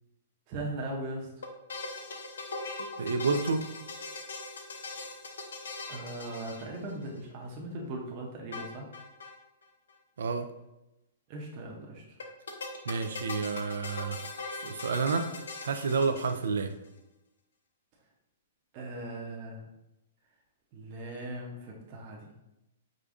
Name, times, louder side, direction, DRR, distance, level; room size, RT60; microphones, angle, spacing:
voice 1, 0.5-1.3 5.9-8.9 11.3-12.0 18.7-19.6 20.7-22.3, right 1 dB, 40° right, -1 dB, 0.7 m, -39 dB
sound 1, 1.4-7.2 8.5-9.4 9.6-9.7 9.9-10.0 12.2-16.7, left 3 dB, 85° left, 0.6 m, -40 dB
voice 2, 3.0-3.6 10.2-10.5 12.9-14.2 14.5-15.3 15.6-16.8, right 4 dB, 80° right, 7 dB, 0.3 m, -29 dB
4.9 x 2.3 x 2.5 m, 0.91 s
hypercardioid pair, 140°, 0 cm